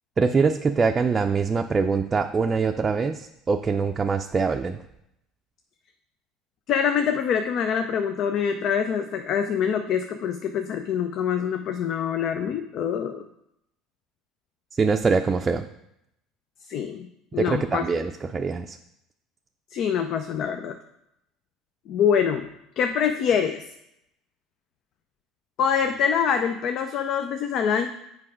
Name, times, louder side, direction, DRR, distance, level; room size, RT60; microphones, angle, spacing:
voice 1, 0.2-4.8 14.8-15.7 17.4-18.8, right 4 dB, 30° right, 5 dB, 0.5 m, -23 dB
voice 2, 6.7-13.2 16.7-17.8 19.7-20.8 21.9-22.5 22.8-23.6 25.6-27.9, left 7 dB, 55° left, 7 dB, 0.5 m, -25 dB
7.6 x 4.7 x 4.9 m, 0.82 s
hypercardioid pair, 70°, 0 cm